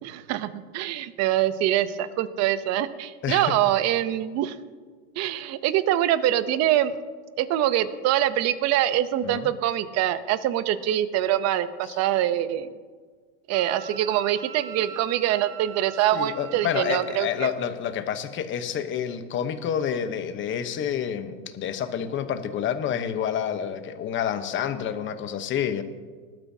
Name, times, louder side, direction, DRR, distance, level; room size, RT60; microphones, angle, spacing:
voice 1, 0.0-4.6 5.2-6.9 7.4-12.7 13.5-17.5, right 12 dB, 40° right, 13 dB, 0.8 m, -24 dB
voice 2, 3.2-3.6 9.2-9.5 11.8-12.0 16.1-25.8, left 8 dB, 30° left, 9 dB, 1.0 m, -29 dB
Wind instrument woodwind instrument, 13.5-17.3, right 8 dB, 55° right, 1.1 m, -42 dB
19.5 x 12.0 x 2.8 m, 1.5 s
supercardioid pair, 130°, 41 cm